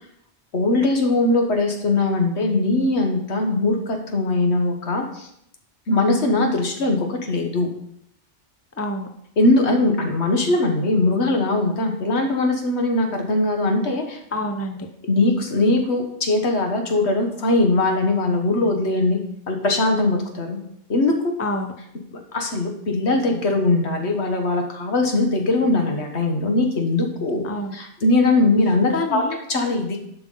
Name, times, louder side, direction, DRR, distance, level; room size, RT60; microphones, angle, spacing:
voice 1, 0.5-5.3 5.9-7.7 9.4-14.2 15.1-19.2 19.5-20.6 20.9-21.3 22.1-29.2 29.5-30.0, left 2 dB, 65° left, 3 dB, 1.5 m, -21 dB
voice 2, 8.8-9.1 14.3-14.9 21.4-21.7 27.4-27.8 28.9-29.4, left 2 dB, 15° left, 5 dB, 0.6 m, -27 dB
11.0 x 5.8 x 3.9 m, 0.74 s
omnidirectional pair, 1.2 m